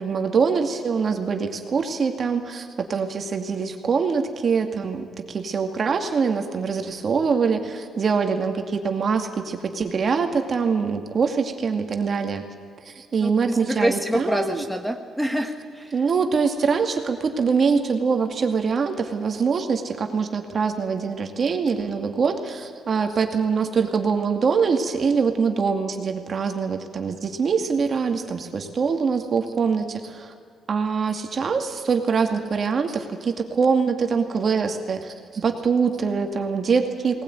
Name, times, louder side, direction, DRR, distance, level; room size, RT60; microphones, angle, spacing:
voice 1, 0.0-12.4 12.9-14.6 15.9-30.3 30.7-37.2, right 5 dB, 45° right, 5 dB, 2.4 m, -24 dB
voice 2, 13.2-15.9, right 1 dB, 5° right, 4 dB, 1.4 m, -26 dB
19.0 x 19.0 x 9.4 m, 2.1 s
cardioid pair, 90°, 0 cm